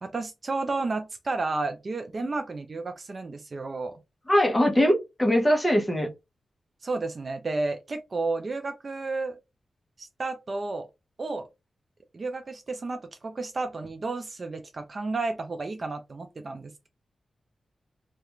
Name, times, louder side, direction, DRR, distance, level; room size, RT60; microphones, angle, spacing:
voice 1, 0.0-4.0 6.8-9.4 10.0-10.9 11.2-11.5 12.1-16.9, right 3 dB, 40° right, 0.3 m, -32 dB
voice 2, 4.3-6.1, equal, 10° left, 0.7 m, -21 dB
2.4 x 2.2 x 2.9 m
wide cardioid pair, 130°, 0 cm